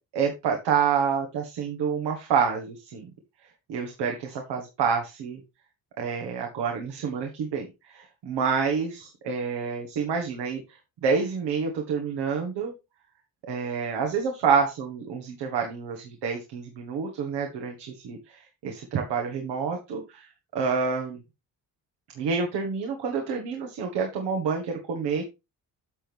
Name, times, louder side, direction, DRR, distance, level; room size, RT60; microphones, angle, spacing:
voice 1, 0.1-3.1 3.7-5.4 6.0-10.6 11.0-12.7 13.5-20.3 20.5-21.2 22.2-25.2, right 6 dB, 90° right, 2 dB, 1.8 m, -28 dB
9.6 x 6.4 x 3.5 m, 0.25 s
cardioid pair, 80°, 40 cm